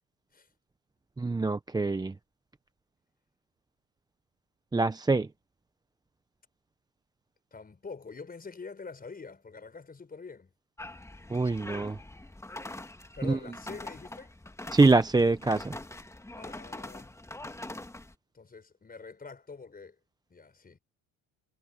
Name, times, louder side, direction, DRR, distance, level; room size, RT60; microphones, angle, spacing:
voice 1, 1.2-2.2 4.7-5.3 11.3-12.0 13.2-13.4 14.7-15.8, right 3 dB, 10° right, 0.7 m, -24 dB
voice 2, 7.5-10.5 13.2-14.3 16.4-17.1 18.3-20.0 20.3-20.8, left 4 dB, 25° left, 5.7 m, -45 dB
sound 1, 10.8-18.1, left 2 dB, 5° left, 1.8 m, -43 dB
supercardioid pair, 90°, 38 cm